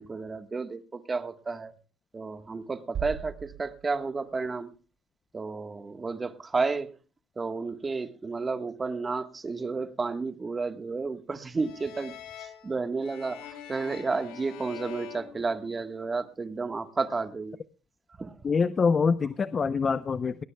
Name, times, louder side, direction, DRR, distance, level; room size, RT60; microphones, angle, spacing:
voice 1, 0.0-1.7 2.1-4.7 5.3-6.9 7.4-12.1 12.4-17.5 18.2-18.3, right 4 dB, 25° right, 10 dB, 1.4 m, -32 dB
sound 1, 2.9-4.8, right 8 dB, 55° right, 2.2 m, -39 dB
sound 2, 11.6-16.2, left 11 dB, 80° left, 3.1 m, -45 dB
voice 2, 18.4-20.4, left 5 dB, 35° left, 14 dB, 0.7 m, -25 dB
19.5 x 18.5 x 2.3 m, 0.35 s
supercardioid pair, 85°, 0 cm